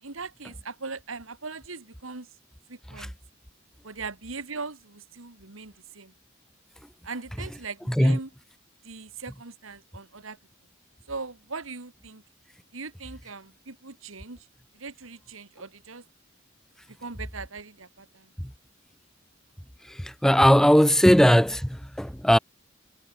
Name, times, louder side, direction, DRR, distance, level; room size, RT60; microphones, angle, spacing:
voice 1, 0.0-2.3 2.7-3.1 3.8-6.1 7.0-8.3 8.8-10.4 11.1-12.2 12.7-14.5 14.7-16.0 17.0-18.3, right 4 dB, 85° right, 2.1 m, -40 dB
voice 2, 7.9-8.2 18.4-18.5 19.9-22.4, equal, 5° left, 1.0 m, -19 dB
head